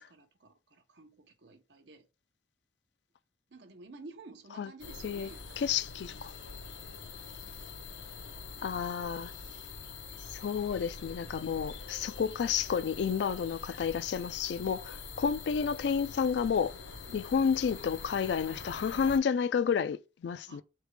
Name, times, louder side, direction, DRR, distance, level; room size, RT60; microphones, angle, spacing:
voice 1, 0.0-2.0 3.5-5.6 17.1-17.5 20.5-20.6, right 3 dB, 65° right, 0.8 m, -52 dB
sound 1, 4.8-19.2, left 4 dB, 85° left, 0.7 m, -45 dB
voice 2, 5.6-6.3 8.6-9.3 10.3-16.7 17.1-20.6, left 6 dB, 65° left, 0.3 m, -31 dB
4.0 x 3.3 x 3.3 m
head